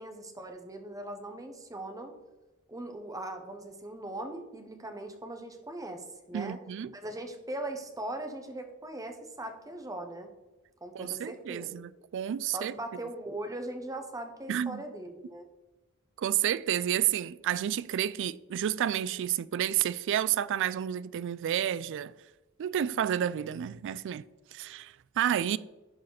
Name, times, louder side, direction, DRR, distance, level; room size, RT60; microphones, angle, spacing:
voice 1, 0.0-2.1 2.7-6.6 6.9-10.3 10.8-11.8 12.5-15.5, right 1 dB, 15° right, 1.0 m, -40 dB
voice 2, 6.3-6.9 10.9-12.7 14.5-14.8 16.2-22.1 22.6-24.2 24.5-25.6, right 10 dB, 55° right, 0.3 m, -30 dB
11.0 x 4.3 x 4.0 m
head